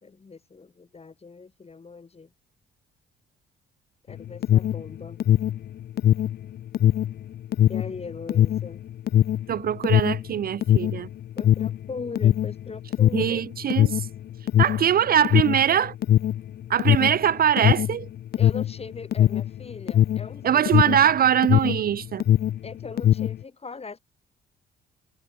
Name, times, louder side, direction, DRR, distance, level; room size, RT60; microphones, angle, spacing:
voice 1, 0.0-2.3 4.1-5.2 7.7-8.8 11.4-13.5 18.3-20.9 22.6-24.0, left 4 dB, 30° left, 4.9 m, -40 dB
Alarm, 4.1-21.9 22.1-23.4, left 11 dB, 50° left, 0.5 m, -21 dB
voice 2, 9.5-11.1 13.1-14.1 14.6-15.9 16.7-18.1 20.4-22.2, right 9 dB, 50° right, 0.5 m, -22 dB
cardioid pair, 90°, 20 cm